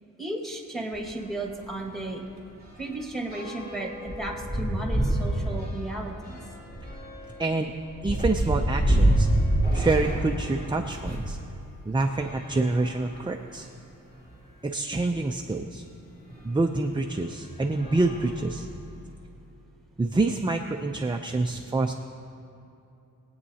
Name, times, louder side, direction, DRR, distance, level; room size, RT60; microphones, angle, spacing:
voice 1, 0.2-2.2 2.8-6.4, right 2 dB, ahead, 0 dB, 1.8 m, -34 dB
sound 1, 0.9-1.1 1.5-1.6 1.9-11.4 12.1-13.5 14.2-14.3 14.5-14.6 16.3-16.4 17.0-17.2 17.7-19.0, right 1 dB, 30° left, 2.7 m, -28 dB
voice 2, 7.4-7.7 8.0-9.3 9.7-11.4 11.9-13.7 14.6-15.8 16.4-18.7 20.0-21.9, right 3 dB, 15° right, 3 dB, 0.5 m, -27 dB
22.5 x 8.8 x 2.8 m, 2.8 s
wide cardioid pair, 115°, 32 cm